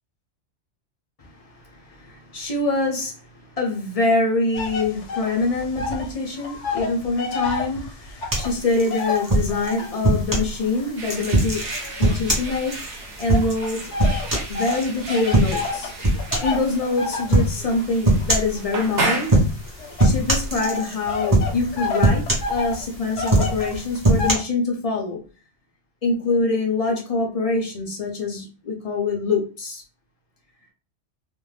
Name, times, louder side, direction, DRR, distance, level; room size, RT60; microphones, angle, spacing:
voice 1, 1.2-11.7 12.0-13.8 14.5-15.9 16.4-19.3 20.0-25.2 26.0-29.8, left 3 dB, 50° left, 0.4 m, -25 dB
sound 1, 4.5-6.1 6.4-10.1 10.6-12.7 13.3-24.4, left 4 dB, 80° left, 1.0 m, -30 dB
sound 2, 8.3-10.5 11.0-14.9 15.3-15.7 16.0-16.6 17.3-17.5 18.0-18.6 19.2-19.7 20.0-21.0 21.3-21.7 22.0-22.9 23.2-24.3, right 1 dB, 25° right, 0.5 m, -20 dB
sound 3, 11.0-20.6, right 2 dB, 60° right, 0.9 m, -33 dB
2.5 x 2.1 x 3.2 m
omnidirectional pair, 1.2 m